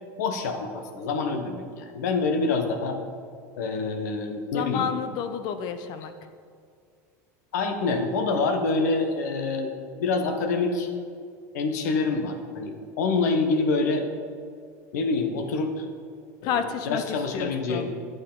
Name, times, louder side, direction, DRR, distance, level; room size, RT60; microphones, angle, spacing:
voice 1, 0.2-3.0 3.6-4.9 6.0-6.1 7.5-9.7 10.0-10.9 11.5-14.1 14.9-15.9 16.4-17.9, left 3 dB, 85° left, 5 dB, 1.2 m, -26 dB
voice 2, 4.5-6.1 16.4-17.0 17.3-17.9, left 8 dB, 55° left, 10 dB, 0.7 m, -30 dB
8.9 x 8.1 x 3.9 m, 2.2 s
supercardioid pair, 120°, 9 cm